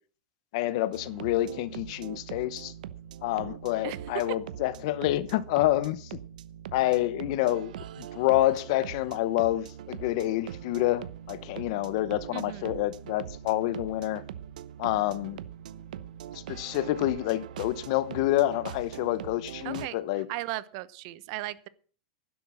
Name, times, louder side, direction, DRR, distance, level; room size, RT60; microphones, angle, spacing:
voice 1, 0.5-2.7 3.2-6.2 6.7-14.2 14.8-15.4 16.5-20.3, left 15 dB, 45° left, 0.9 m, -28 dB
sound 1, 0.9-19.9, right 10 dB, 80° right, 0.9 m, -42 dB
voice 2, 12.3-12.8 19.6-20.0 20.3-21.7, right 17 dB, 40° right, 0.8 m, -36 dB
11.5 x 11.0 x 6.2 m
supercardioid pair, 170°, 4 cm